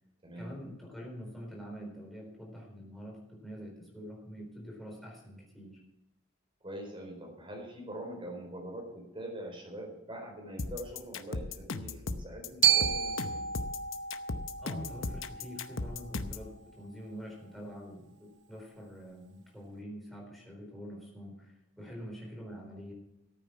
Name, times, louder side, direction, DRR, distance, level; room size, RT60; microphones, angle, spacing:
voice 1, 0.3-5.8 14.6-22.9, equal, ahead, -2 dB, 4.1 m, -45 dB
voice 2, 6.6-13.5 21.8-21.9, right 1 dB, 25° right, 1 dB, 4.4 m, -43 dB
sound 1, 10.6-16.5, left 3 dB, 85° left, 0.9 m, -37 dB
Glockenspiel, 12.6-16.7, right 9 dB, 65° right, 1.2 m, -31 dB
14.0 x 9.0 x 5.9 m, 0.90 s
head